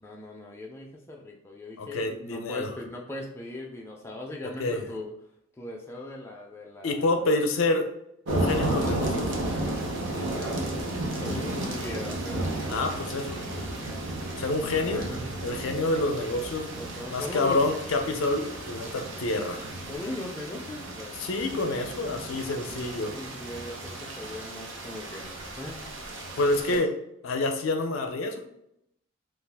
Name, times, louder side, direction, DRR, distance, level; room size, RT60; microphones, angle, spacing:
voice 1, 0.0-5.1 5.6-7.1 10.3-12.6 14.8-15.3 16.8-17.6 19.9-21.3 22.7-25.9 26.7-26.8, left 2 dB, 10° left, -1 dB, 0.3 m, -39 dB
voice 2, 1.8-2.7 4.4-4.8 6.8-7.9 8.3-9.3 12.7-13.4 14.4-15.1 15.4-16.7 17.1-19.7 21.2-23.1 26.4-26.9 27.2-28.4, left 2 dB, 75° left, 5 dB, 0.4 m, -28 dB
sound 1, 8.3-26.8, right 1 dB, 60° right, 0.6 m, -33 dB
2.4 x 2.3 x 3.4 m, 0.78 s
head